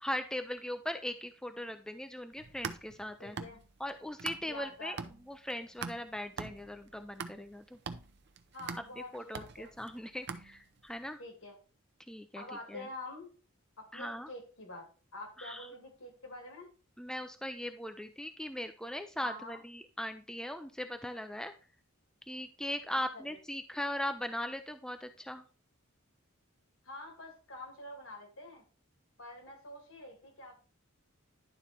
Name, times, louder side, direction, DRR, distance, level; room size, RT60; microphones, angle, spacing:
voice 1, 0.0-3.4 3.8-5.0 5.3-7.8 9.0-11.2 12.1-12.9 13.9-14.3 15.4-15.7 17.0-21.5 22.2-25.4, left 1 dB, 5° left, 8 dB, 0.4 m, -39 dB
sound 1, 2.3-4.7 5.0-10.9, right 5 dB, 55° right, 0.7 m, -43 dB
voice 2, 3.2-3.6 4.4-5.0 8.5-9.7 11.2-11.6 12.4-13.3 13.8-14.8 15.1-16.7 19.2-19.6 22.9-23.4 26.8-28.6 29.2-30.5, left 1 dB, 70° left, 2 dB, 2.6 m, -47 dB
11.0 x 4.0 x 4.4 m, 0.37 s
head